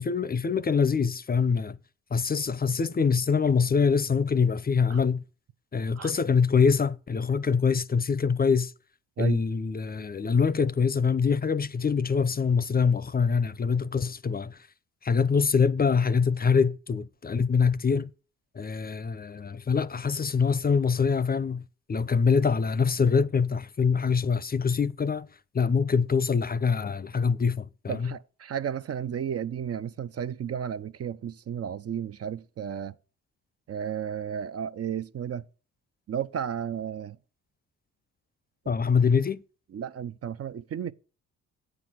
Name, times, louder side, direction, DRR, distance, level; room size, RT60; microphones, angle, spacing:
voice 1, 0.0-1.8 2.1-5.2 5.7-8.7 9.2-14.6 15.0-18.1 18.6-21.6 21.9-25.3 25.5-28.1 38.7-39.4, left 5 dB, 30° left, 0.6 m, -24 dB
voice 2, 27.9-33.0 33.7-35.5 36.1-37.2 38.7-38.8 39.7-40.9, right 8 dB, 50° right, 0.6 m, -33 dB
8.4 x 6.1 x 7.7 m
supercardioid pair, 60°, 32 cm